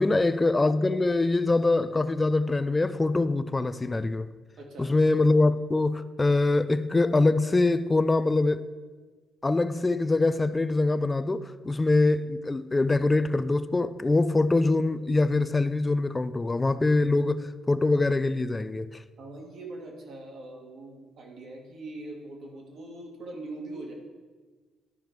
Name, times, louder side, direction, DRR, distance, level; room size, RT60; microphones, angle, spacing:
voice 1, 0.0-4.3 4.8-8.7 9.4-19.0, left 2 dB, 20° left, 0.4 m, -24 dB
voice 2, 4.6-4.9 19.2-23.9, right 2 dB, 65° right, 1.9 m, -42 dB
12.5 x 5.0 x 4.7 m
cardioid pair, 90°, 0 cm